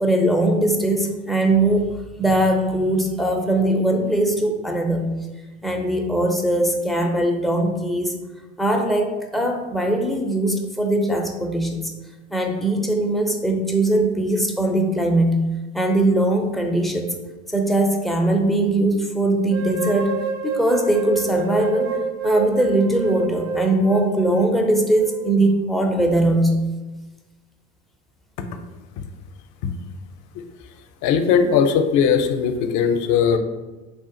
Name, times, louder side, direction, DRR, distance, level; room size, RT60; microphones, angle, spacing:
voice 1, 0.0-1.9 2.2-5.0 5.6-8.1 8.6-11.9 12.3-15.4 15.7-17.1 17.5-20.1 20.4-21.9 22.2-26.5, right 1 dB, ahead, 1 dB, 0.4 m, -20 dB
sound 1, 19.5-25.5, right 4 dB, 85° right, 0.5 m, -29 dB
voice 2, 31.0-33.4, left 7 dB, 55° left, 8 dB, 0.5 m, -19 dB
3.5 x 2.5 x 3.7 m, 1.2 s
hypercardioid pair, 85°, 37 cm